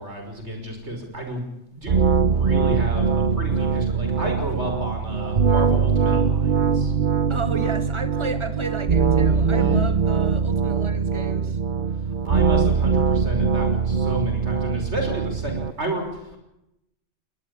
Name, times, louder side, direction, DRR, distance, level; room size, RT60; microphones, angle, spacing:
voice 1, 0.0-6.9 9.5-9.9 12.0-16.4, right 1 dB, 65° right, 4 dB, 6.2 m, -31 dB
sound 1, 1.9-15.7, right 5 dB, 45° right, 1.1 m, -22 dB
sound 2, 3.5-4.8 5.2-5.6, equal, 85° right, 5.6 m, -48 dB
voice 2, 7.3-11.6, right 4 dB, 25° right, 10 dB, 1.8 m, -32 dB
21.0 x 20.5 x 8.7 m, 0.85 s
omnidirectional pair, 1.3 m